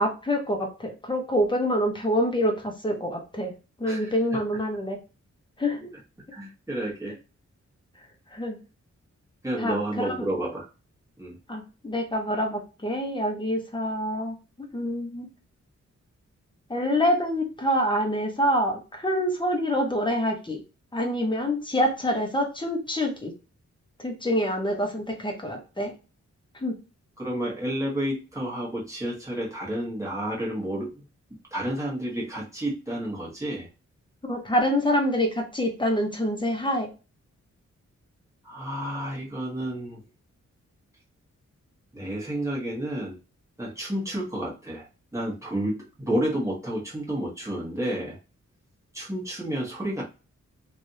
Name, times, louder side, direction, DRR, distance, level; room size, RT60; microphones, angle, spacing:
voice 1, 0.0-3.5 3.8-5.0 5.6-5.9 8.3-8.6 9.6-10.3 11.5-15.3 16.7-20.6 20.9-23.3 24.0-25.9 26.5-26.7 34.3-36.9, equal, 15° left, 2 dB, 0.9 m, -26 dB
voice 2, 3.8-4.4 6.3-7.2 9.4-10.7 11.2-11.4 27.2-31.0 31.5-33.7 38.4-40.0 41.9-43.2 43.6-44.9 45.1-48.2 48.9-50.0, right 1 dB, 10° right, -4 dB, 1.2 m, -30 dB
3.3 x 2.6 x 2.6 m, 0.31 s
wide cardioid pair, 140°, 29 cm